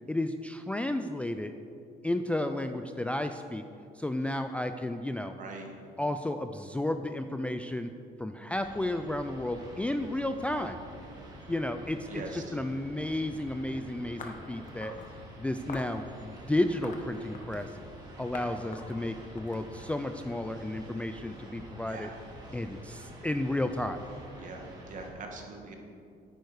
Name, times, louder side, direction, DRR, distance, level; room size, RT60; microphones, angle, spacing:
voice 1, 0.1-1.5 2.0-3.6 3.9-5.3 6.0-7.9 8.2-10.8 11.5-14.9 15.4-17.7 18.2-22.1 22.5-24.0, left 1 dB, 5° left, 7 dB, 0.4 m, -32 dB
voice 2, 5.4-5.7 12.1-12.6 21.9-22.1 24.4-25.7, right 3 dB, 50° right, 2 dB, 1.7 m, -42 dB
sound 1, 8.5-25.1, right 1 dB, 25° right, 2.3 m, -48 dB
sound 2, 14.2-15.1 15.7-16.0 16.6-17.7 18.3-18.5 18.7-20.1, left 4 dB, 50° left, 1.3 m, -44 dB
9.7 x 9.3 x 4.7 m, 2.4 s
cardioid pair, 110°, 17 cm